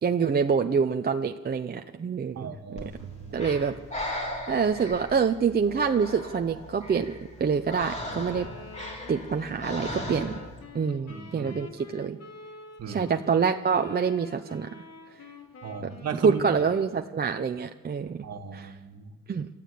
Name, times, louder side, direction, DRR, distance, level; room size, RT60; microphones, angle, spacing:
voice 1, 0.0-2.5 3.3-3.7 4.5-8.5 9.1-10.3 10.7-12.2 12.9-14.7 16.2-18.3 18.5-18.7 19.3-19.5, right 6 dB, 30° right, 5 dB, 0.7 m, -26 dB
voice 2, 2.4-2.9 3.2-3.5 11.1-11.5 12.8-13.1 15.6-16.4 18.2-19.1, right 6 dB, 50° right, 5 dB, 1.9 m, -36 dB
Breathing, 2.8-10.6, left 1 dB, 20° left, 3.8 m, -38 dB
sound 1, 3.0-4.8, right 10 dB, 65° right, 1.6 m, -49 dB
Wind instrument woodwind instrument, 8.3-17.3, left 3 dB, 50° left, 2.9 m, -47 dB
27.5 x 13.5 x 8.4 m, 1.3 s
cardioid pair, 145°, 34 cm